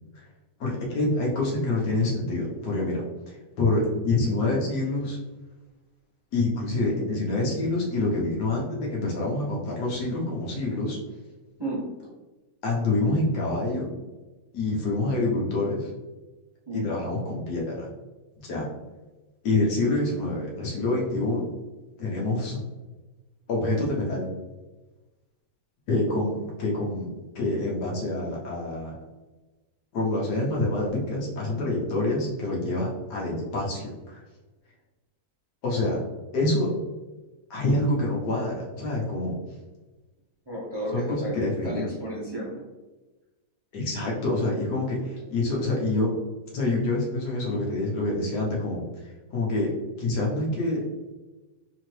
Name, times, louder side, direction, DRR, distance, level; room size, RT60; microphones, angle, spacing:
voice 1, 0.6-3.0 3.3-5.2 6.3-11.0 12.6-13.9 14.5-15.9 16.7-17.9 18.4-18.7 19.4-21.5 22.0-22.6 23.5-24.3 25.9-29.0 29.9-34.2 35.6-36.0 36.3-36.7 37.5-39.4 40.9-41.9 43.7-46.1 46.5-48.8 49.3-49.7 50.0-50.8, left 2 dB, 85° left, -3 dB, 1.6 m, -26 dB
voice 2, 11.6-11.9 16.7-16.9 40.5-42.7, right 1 dB, 20° right, -7 dB, 0.9 m, -32 dB
4.2 x 2.9 x 3.1 m, 1.2 s
omnidirectional pair, 1.7 m